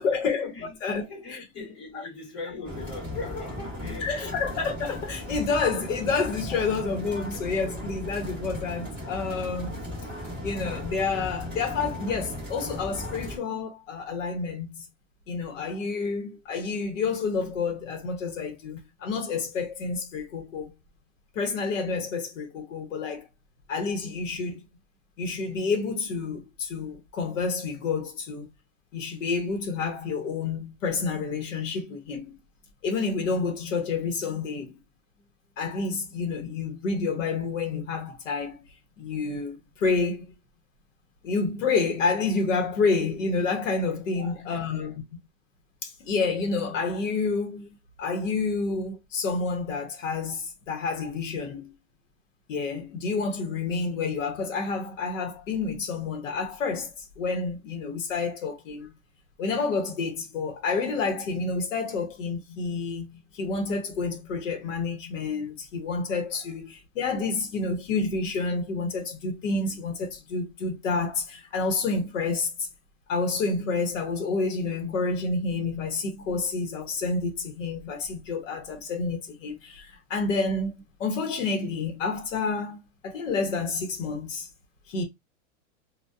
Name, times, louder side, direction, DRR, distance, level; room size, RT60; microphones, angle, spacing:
voice 1, 0.0-0.5 0.8-1.0 4.0-9.8 10.4-14.9 15.3-20.7 21.3-23.3 23.7-24.6 25.2-28.5 28.9-32.3 32.8-34.8 35.6-38.6 39.0-40.3 41.2-44.9 45.8-47.7 48.0-51.7 52.5-58.9 59.4-72.7 73.1-82.8 83.0-84.5 84.9-85.0, left 4 dB, 70° left, 0.9 m, -29 dB
voice 2, 0.5-4.4 6.5-6.6 44.1-45.0 66.3-66.4, left 3 dB, 25° left, 1.3 m, -40 dB
sound 1, 2.6-13.4, left 1 dB, 5° left, 0.9 m, -36 dB
2.5 x 2.2 x 2.2 m
supercardioid pair, 170°, 39 cm